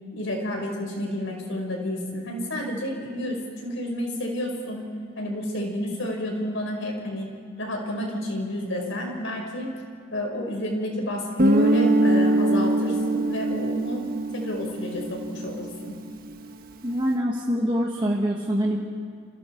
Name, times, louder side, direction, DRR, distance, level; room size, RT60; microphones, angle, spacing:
voice 1, 0.1-4.8 5.2-7.3 7.6-9.7 10.1-14.0 14.3-15.9, left 1 dB, 65° left, 1 dB, 5.3 m, -30 dB
Guitar, 11.4-16.0, right 1 dB, 45° right, 1.4 m, -22 dB
voice 2, 16.8-18.8, equal, 25° right, -3 dB, 1.7 m, -24 dB
29.5 x 27.5 x 4.7 m, 2.3 s
head